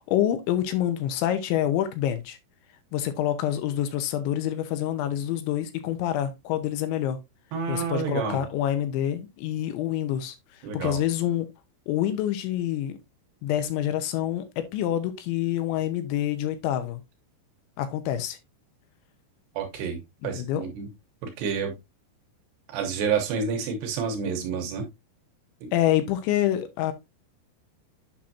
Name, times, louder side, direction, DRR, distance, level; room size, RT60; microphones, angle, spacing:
voice 1, 0.0-2.4 2.9-7.2 7.7-10.4 10.7-11.5 11.9-13.0 13.4-17.0 17.8-18.4 20.2-20.6 25.7-26.9, left 11 dB, 80° left, 3.1 m, -27 dB
voice 2, 7.5-8.4 10.6-11.0 19.5-20.9 21.2-21.7 22.7-24.9 25.6-25.7, right 6 dB, 70° right, 2.9 m, -29 dB
8.8 x 5.8 x 2.7 m
omnidirectional pair, 5.5 m